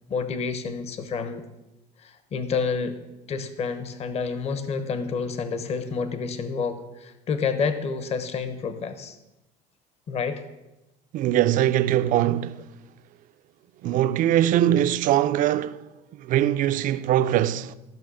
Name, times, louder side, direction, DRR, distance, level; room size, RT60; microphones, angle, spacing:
voice 1, 0.1-1.5 2.0-3.0 3.3-9.2 10.1-10.4, left 5 dB, 40° left, 1.1 m, -29 dB
voice 2, 11.1-12.6 13.8-15.8 16.2-17.7, right 12 dB, 55° right, 0.5 m, -22 dB
13.5 x 6.3 x 6.3 m
cardioid pair, 130°, 16 cm